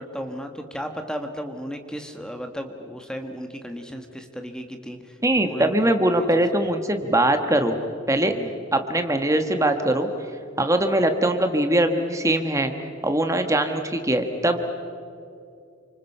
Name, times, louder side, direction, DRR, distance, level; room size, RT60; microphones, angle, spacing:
voice 1, 0.0-6.2 6.6-6.7 8.3-8.5, equal, 5° left, 5 dB, 1.4 m, -35 dB
voice 2, 5.2-7.8 8.1-8.3 8.7-10.1 10.6-12.7 13.0-14.6, right 1 dB, 15° right, 6 dB, 1.4 m, -21 dB
29.5 x 26.0 x 5.5 m, 2.5 s
head